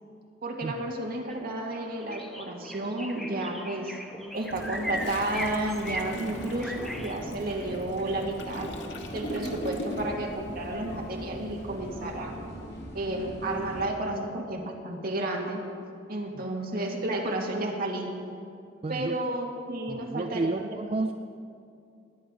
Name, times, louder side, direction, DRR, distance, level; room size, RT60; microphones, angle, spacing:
voice 1, 0.4-4.0 4.3-8.7 9.1-12.4 12.9-15.6 16.1-18.1 18.9-21.0, right 1 dB, 55° right, 0 dB, 1.9 m, -32 dB
sound 1, 1.3-1.4 1.7-7.1, equal, ahead, 1.0 m, -38 dB
Toilet flush, 4.3-10.3 10.6-10.9, left 1 dB, 85° left, 1.4 m, -41 dB
sound 2, 4.5-13.9, right 1 dB, 65° left, 2.4 m, -41 dB
voice 2, 18.8-19.2 19.9-21.1, right 3 dB, 30° right, 8 dB, 0.3 m, -31 dB
20.0 x 9.0 x 5.1 m, 2.5 s
head